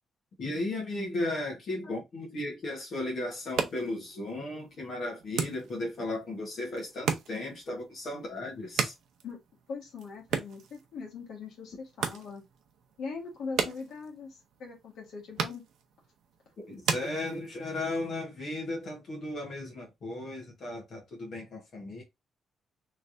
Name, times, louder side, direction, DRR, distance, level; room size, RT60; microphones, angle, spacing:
voice 1, 0.4-9.0 16.6-22.0, left 2 dB, 45° left, 1.3 m, -35 dB
sound 1, 3.3-17.8, right 7 dB, 90° right, 0.6 m, -38 dB
voice 2, 9.7-12.4 13.0-15.6, left 4 dB, 75° left, 1.3 m, -41 dB
3.3 x 3.1 x 2.6 m
cardioid pair, 175°, 0 cm